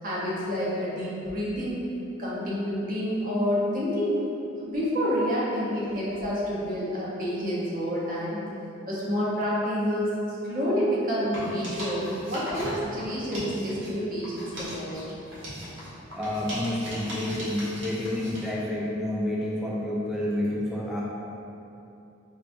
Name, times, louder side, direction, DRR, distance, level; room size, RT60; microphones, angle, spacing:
voice 1, 0.0-1.8 2.2-4.3 4.6-8.4 8.9-15.0, equal, 45° right, -7 dB, 0.8 m, -28 dB
sound 1, 11.2-13.9 14.2-18.5, equal, 70° right, 1.0 m, -38 dB
voice 2, 16.1-21.0, left 1 dB, ahead, -6 dB, 0.4 m, -29 dB
4.7 x 2.3 x 2.5 m, 2.8 s
head